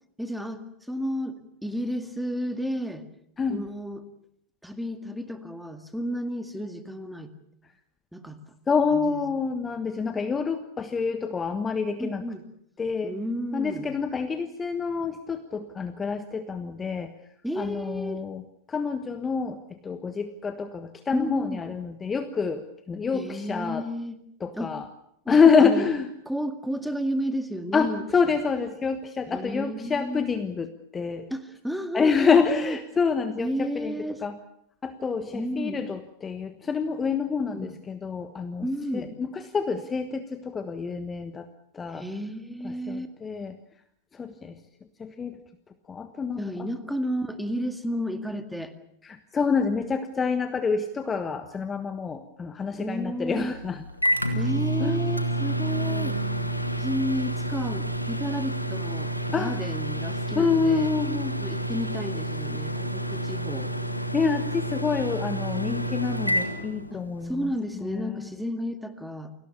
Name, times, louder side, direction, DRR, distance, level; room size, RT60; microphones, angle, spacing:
voice 1, 0.2-3.1 3.5-4.1 4.6-7.3 8.1-8.4 8.9-9.2 12.0-12.4 13.0-13.9 17.4-18.2 21.1-21.6 23.1-24.2 24.5-24.8 25.3-25.9 26.3-28.0 29.3-30.2 31.3-32.8 33.4-34.2 35.3-35.8 37.5-37.7 38.6-39.1 41.9-43.1 46.4-48.7 52.8-53.5 54.3-56.2 56.8-60.9 61.4-63.7 66.9-69.3, equal, ahead, 9 dB, 2.0 m, -32 dB
voice 2, 8.7-12.2 12.8-13.2 13.5-17.1 17.6-23.9 24.4-24.9 25.3-26.1 27.7-31.3 31.9-33.9 34.2-34.4 34.8-38.7 38.9-41.5 41.7-42.0 42.6-43.6 44.1-44.6 45.0-45.4 45.9-46.4 49.0-53.8 54.8-55.0 59.3-59.6 60.3-61.4 64.1-68.3, left 5 dB, 20° left, 9 dB, 1.3 m, -27 dB
Microwave oven, 53.3-67.4, right 1 dB, 90° left, 1.9 m, -29 dB
29.0 x 18.5 x 7.0 m, 0.72 s
figure-of-eight pair, 90°, 0 cm